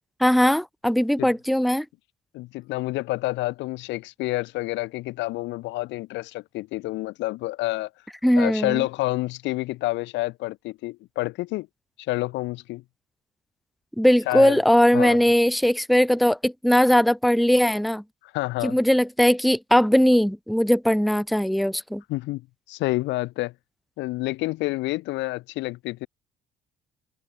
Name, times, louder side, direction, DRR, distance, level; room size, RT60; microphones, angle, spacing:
voice 1, 0.2-1.9 8.2-8.8 14.0-18.0 18.6-22.0, equal, ahead, 0.8 m, -20 dB
voice 2, 2.3-7.9 8.4-11.7 12.0-12.8 14.3-14.6 14.9-15.2 18.2-18.8 22.1-23.5 24.0-26.1, left 19 dB, 70° left, 1.1 m, -28 dB
supercardioid pair, 65°, 19 cm